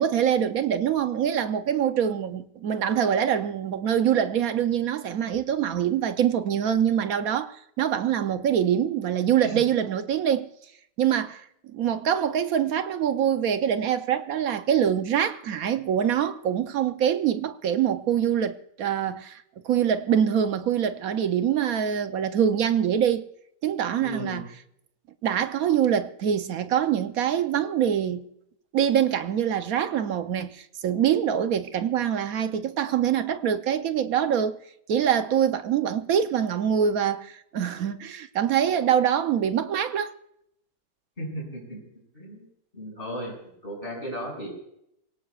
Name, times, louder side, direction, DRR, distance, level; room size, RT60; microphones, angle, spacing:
voice 1, 0.0-10.5 11.0-11.4 11.7-23.2 23.6-24.4 25.2-28.2 28.7-34.6 34.9-40.1, right 9 dB, 60° right, 1.0 m, -24 dB
voice 2, 24.0-24.4 41.2-41.8 42.1-42.5 42.7-44.5, equal, 30° left, 6.6 m, -35 dB
27.0 x 17.5 x 2.4 m
omnidirectional pair, 1.9 m